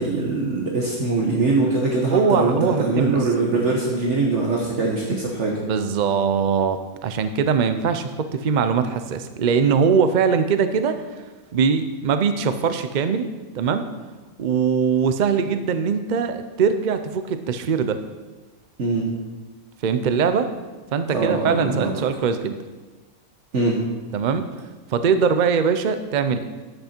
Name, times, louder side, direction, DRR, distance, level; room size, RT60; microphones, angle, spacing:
voice 1, 0.0-5.6 18.8-19.1 21.1-21.9 23.5-23.8, right 3 dB, 55° right, -2 dB, 1.4 m, -22 dB
voice 2, 2.1-3.2 5.6-11.0 11.5-13.3 13.5-13.9 14.4-18.0 19.8-20.5 20.9-22.6 24.1-24.4 24.9-26.4, right 6 dB, 70° right, 9 dB, 0.4 m, -21 dB
11.0 x 8.1 x 4.4 m, 1.3 s
omnidirectional pair, 1.5 m